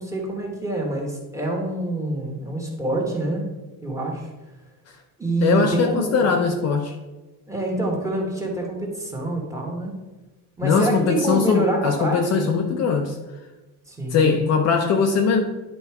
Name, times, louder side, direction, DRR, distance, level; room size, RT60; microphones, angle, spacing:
voice 1, 0.0-3.5 3.8-4.3 5.2-6.3 7.5-9.9 10.6-12.5 13.9-14.3, right 2 dB, 10° right, -2 dB, 1.3 m, -26 dB
voice 2, 5.4-7.0 10.6-13.2 14.1-15.4, left 5 dB, 40° left, 4 dB, 0.5 m, -20 dB
10.5 x 3.9 x 4.7 m, 1.2 s
cardioid pair, 175°, 39 cm